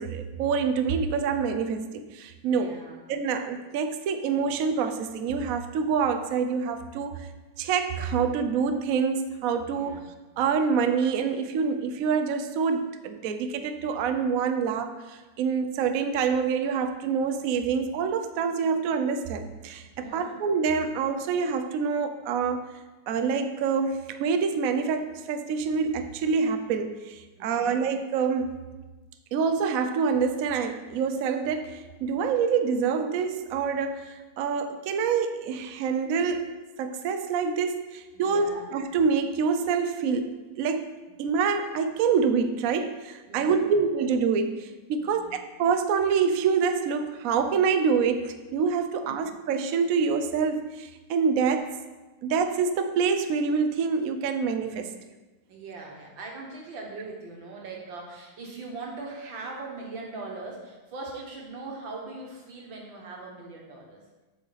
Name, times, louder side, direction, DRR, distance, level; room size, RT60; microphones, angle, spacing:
voice 1, 0.0-2.8 3.1-7.3 7.6-10.0 10.4-22.7 23.1-28.5 29.3-40.9 41.2-51.7 52.2-54.9, right 5 dB, 65° right, 7 dB, 0.8 m, -26 dB
voice 2, 2.5-3.0 9.7-10.1 20.0-20.4 27.4-27.8 38.1-38.7 43.3-43.6 45.0-45.2 49.0-49.2 55.5-64.0, right 3 dB, 85° right, 0 dB, 2.1 m, -41 dB
7.8 x 6.5 x 4.0 m, 1.2 s
omnidirectional pair, 2.0 m